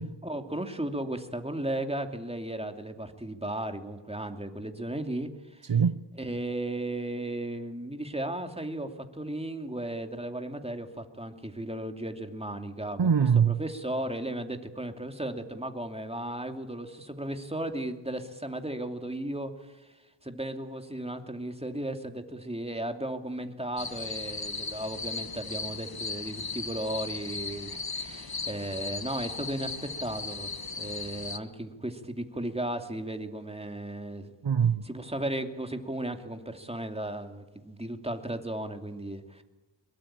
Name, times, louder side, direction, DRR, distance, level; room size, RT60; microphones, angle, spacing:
voice 1, 0.2-5.7 6.2-13.1 13.5-20.0 20.2-34.3 34.8-39.4, right 1 dB, 15° right, 2.6 m, -35 dB
voice 2, 5.7-6.0 13.0-13.6 34.4-34.9, right 7 dB, 75° right, 0.8 m, -23 dB
sound 1, 23.8-31.4, left 4 dB, 55° left, 1.3 m, -37 dB
23.0 x 22.5 x 8.9 m
wide cardioid pair, 45°, 44 cm